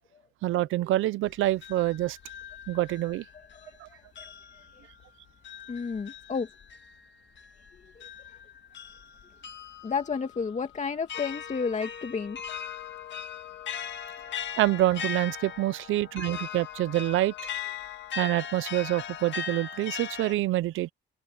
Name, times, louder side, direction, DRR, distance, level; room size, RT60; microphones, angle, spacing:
voice 1, 0.4-2.2 2.7-3.2 3.8-3.9 14.6-17.3 18.2-20.9, right 15 dB, 85° right, 0.7 m, -26 dB
sound 1, 1.3-3.8 4.2-20.3, left 7 dB, 65° left, 2.1 m, -40 dB
voice 2, 3.5-4.3 5.7-6.5 8.0-8.4 9.8-12.4, left 5 dB, 35° left, 2.4 m, -32 dB
cardioid pair, 90°, 20 cm